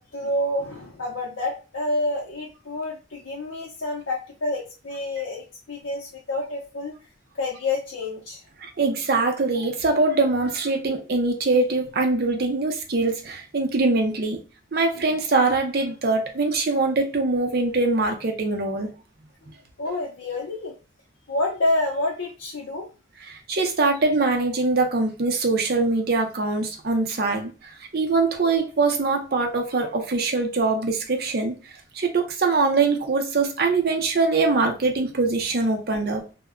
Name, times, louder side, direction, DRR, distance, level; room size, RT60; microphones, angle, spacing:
voice 1, 0.0-6.9 7.3-8.4 19.8-20.7 21.3-22.9, left 2 dB, 80° left, -2 dB, 0.6 m, -28 dB
voice 2, 8.6-14.4 14.7-18.9 23.3-36.2, right 3 dB, 50° right, 3 dB, 0.5 m, -23 dB
2.1 x 2.1 x 3.5 m, 0.33 s
head